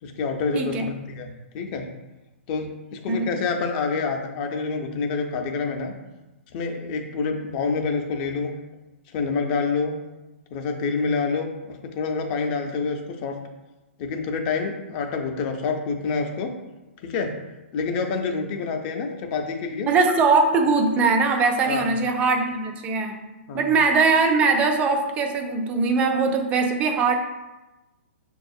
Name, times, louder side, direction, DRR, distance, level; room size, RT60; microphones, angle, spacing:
voice 1, 0.0-1.9 2.5-5.9 6.5-8.5 9.1-10.0 10.5-13.3 14.0-16.5 17.0-17.3 17.7-19.9 21.7-21.9 23.5-23.7, left 4 dB, 35° left, 4 dB, 0.5 m, -27 dB
voice 2, 0.5-1.0 3.1-3.3 19.9-23.2 23.5-27.1, right 4 dB, 20° right, 4 dB, 0.4 m, -21 dB
6.0 x 2.3 x 2.6 m, 1.1 s
hypercardioid pair, 145°, 7 cm